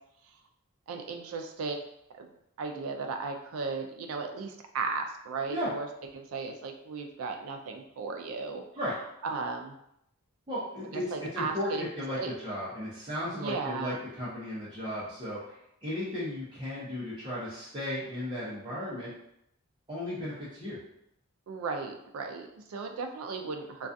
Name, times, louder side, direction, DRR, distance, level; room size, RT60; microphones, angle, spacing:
voice 1, 0.9-1.8 2.1-2.3 2.6-5.9 6.1-8.6 9.2-9.8 10.9-11.9 12.2-12.3 13.3-14.0 21.5-23.9, right 4 dB, 80° right, 4 dB, 0.4 m, -35 dB
voice 2, 10.5-11.0 11.3-15.5 15.8-19.1 19.9-20.8, left 1 dB, 20° right, -11 dB, 0.6 m, -35 dB
2.3 x 2.3 x 2.5 m, 0.77 s
head